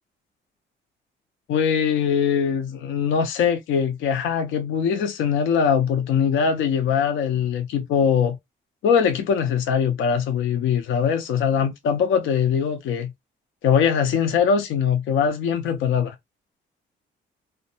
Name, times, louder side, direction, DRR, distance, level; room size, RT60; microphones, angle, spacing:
voice 1, 1.5-8.4 8.8-13.1 13.6-16.1, left 7 dB, 80° left, 0.5 m, -22 dB
2.6 x 2.1 x 2.6 m
cardioid pair, 90°, 20 cm